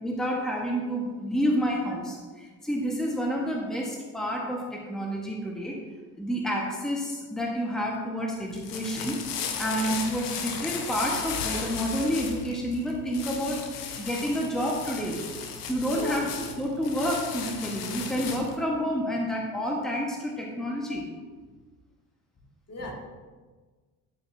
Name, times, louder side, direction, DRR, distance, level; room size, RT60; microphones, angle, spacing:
voice 1, 0.0-5.8 6.2-9.2 9.6-13.7 14.0-15.2 15.7-16.2 16.6-21.0, equal, ahead, -1 dB, 1.6 m, -29 dB
sound 1, 8.4-18.6, left 6 dB, 80° left, 1.0 m, -36 dB
voice 2, 15.9-16.2 20.9-21.0 22.7-22.9, left 1 dB, 30° left, 0 dB, 2.1 m, -36 dB
11.0 x 8.5 x 2.9 m, 1.4 s
figure-of-eight pair, 55°, 47 cm